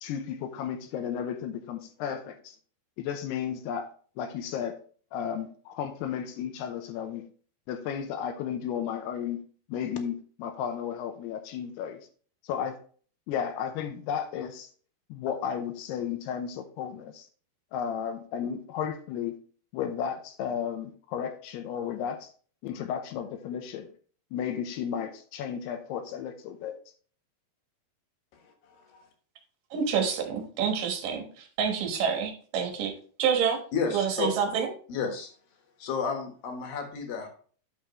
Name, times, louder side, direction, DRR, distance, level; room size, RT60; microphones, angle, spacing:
voice 1, 0.0-2.6 3.0-3.9 4.2-4.7 5.1-7.2 7.7-9.4 9.7-12.0 12.4-12.8 13.3-14.7 15.1-17.3 17.7-19.4 19.7-22.3 22.6-23.9 24.3-26.7, left 8 dB, 85° left, 2.8 m, -33 dB
voice 2, 29.7-32.9 33.2-33.6 33.9-34.7, right 7 dB, 65° right, 2.7 m, -27 dB
voice 3, 33.7-34.3 34.9-35.3 35.8-37.3, left 5 dB, 65° left, 3.0 m, -31 dB
9.1 x 6.4 x 3.1 m
omnidirectional pair, 4.7 m